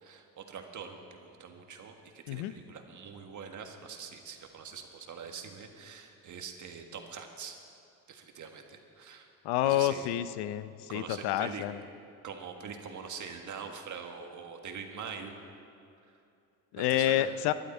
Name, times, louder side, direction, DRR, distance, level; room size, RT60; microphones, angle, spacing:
voice 1, 0.0-7.6 8.1-9.3 9.6-10.1 10.9-11.6 12.2-15.3 16.7-17.3, right 6 dB, 50° right, 4 dB, 1.6 m, -44 dB
voice 2, 9.4-11.8 16.7-17.5, left 13 dB, 85° left, 13 dB, 0.7 m, -29 dB
19.5 x 12.0 x 4.4 m, 2.6 s
cardioid pair, 105°, 39 cm